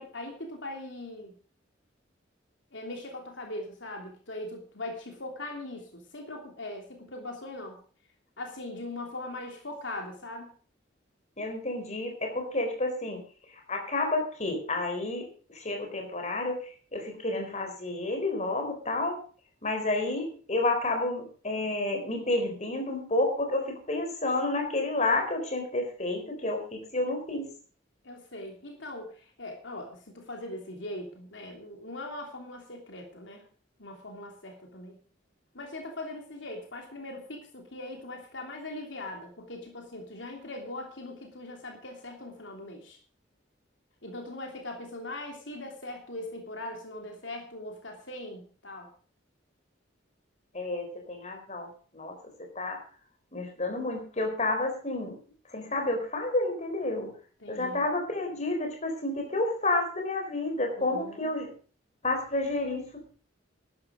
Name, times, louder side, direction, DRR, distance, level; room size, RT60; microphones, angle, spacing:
voice 1, 0.0-1.3 2.7-7.8 8.4-10.5 28.0-33.5 33.8-35.0 35.5-43.0 44.0-48.9 57.4-57.8 60.8-61.3, left 2 dB, 70° left, 2 dB, 3.1 m, -40 dB
voice 2, 11.4-13.2 13.5-19.2 19.6-27.5 50.5-52.8 53.3-55.2 55.5-57.1 57.5-61.5 62.0-63.1, left 2 dB, 35° left, 4 dB, 4.2 m, -30 dB
13.5 x 11.5 x 5.2 m, 0.42 s
head